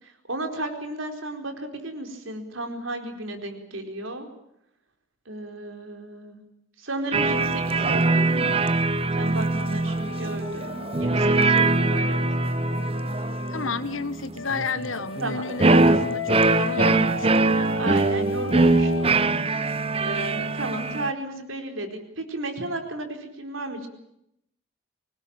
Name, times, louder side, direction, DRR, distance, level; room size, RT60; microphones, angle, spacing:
voice 1, 0.0-4.3 5.3-6.4 6.8-8.6 9.2-12.2 15.2-15.4 17.8-19.3 19.6-23.9, right 2 dB, 85° right, 5 dB, 4.5 m, -34 dB
sound 1, 7.1-21.1, right 3 dB, 30° right, 0.9 m, -22 dB
sound 2, 9.1-13.7 14.3-19.1, left 4 dB, 70° left, 1.6 m, -36 dB
voice 2, 13.5-17.7, left 5 dB, 85° left, 14 dB, 1.4 m, -32 dB
24.5 x 20.0 x 8.9 m, 0.77 s
head